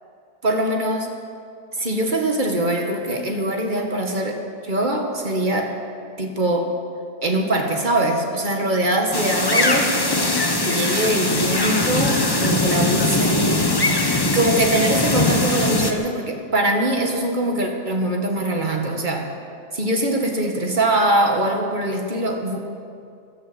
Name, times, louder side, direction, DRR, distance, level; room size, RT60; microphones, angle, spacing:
voice 1, 0.4-1.1 1.8-5.7 6.2-6.7 7.2-9.9 10.5-13.7 14.3-19.3 19.7-22.6, right 1 dB, 30° right, 2 dB, 1.9 m, -22 dB
sound 1, 9.1-15.9, left 2 dB, 20° left, 0.9 m, -21 dB
14.0 x 12.0 x 8.2 m, 2.3 s
omnidirectional pair, 1.8 m